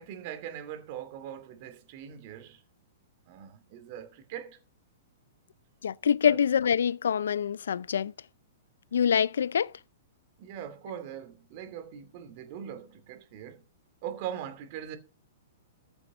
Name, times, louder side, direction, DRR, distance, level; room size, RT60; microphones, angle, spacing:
voice 1, 0.0-2.6 3.3-4.6 6.1-6.4 10.4-13.6 14.0-15.0, right 9 dB, 40° right, 2.7 m, -41 dB
voice 2, 5.8-8.1 8.9-9.7, left 8 dB, 90° left, 0.5 m, -25 dB
14.5 x 7.0 x 5.3 m
hypercardioid pair, 160°, 0 cm